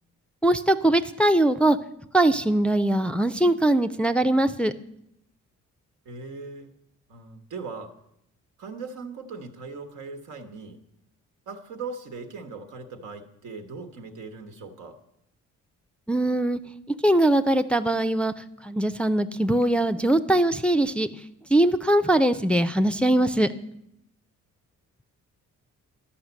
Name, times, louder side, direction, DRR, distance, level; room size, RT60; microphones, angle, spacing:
voice 1, 0.4-1.8 2.1-4.7 16.1-16.6 17.0-21.1 21.5-23.5, right 1 dB, 5° left, 9 dB, 0.4 m, -21 dB
voice 2, 6.0-6.7 7.1-8.0 8.6-10.8 11.5-15.0, right 4 dB, 80° right, 7 dB, 1.4 m, -39 dB
11.0 x 5.7 x 8.0 m, 0.78 s
cardioid pair, 90°, 30 cm